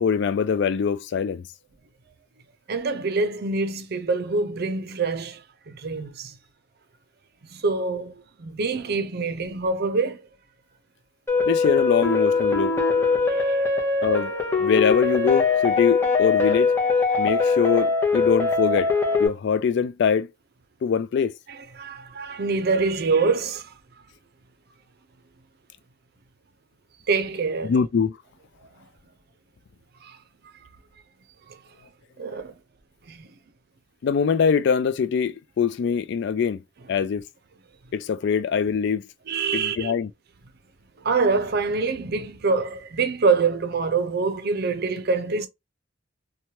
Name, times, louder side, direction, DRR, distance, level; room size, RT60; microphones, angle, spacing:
voice 1, 0.0-1.5 11.5-12.7 14.0-14.3 14.6-16.7 17.2-18.9 19.2-20.3 20.8-21.3 27.6-28.2 34.0-36.6 36.9-37.2 37.9-39.0 39.5-40.1, left 6 dB, 60° left, 0.3 m, -23 dB
voice 2, 2.7-6.3 7.5-10.2 13.3-13.6 21.7-23.7 27.1-27.7 30.0-30.2 31.5-31.6 32.2-32.6 33.1-33.3 39.3-39.9 41.0-45.5, right 4 dB, 55° right, 0.5 m, -25 dB
sound 1, 11.3-19.3, left 4 dB, 15° left, 0.7 m, -22 dB
3.0 x 2.3 x 2.8 m
head